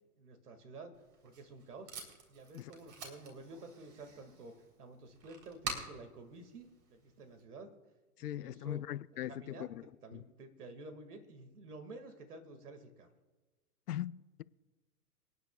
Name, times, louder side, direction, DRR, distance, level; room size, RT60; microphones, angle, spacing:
voice 1, 0.2-0.9 1.2-1.9 2.3-4.5 4.8-7.7 8.2-8.8 9.3-9.7 10.0-13.1, right 2 dB, 75° right, 2.3 m, -51 dB
Packing tape duct tape, 0.9-7.4, right 4 dB, 40° right, 3.6 m, -48 dB
voice 2, 8.2-9.8 10.1-10.2 13.9-14.4, left 12 dB, 80° left, 0.6 m, -40 dB
27.5 x 9.4 x 2.4 m
hypercardioid pair, 130°, 45 cm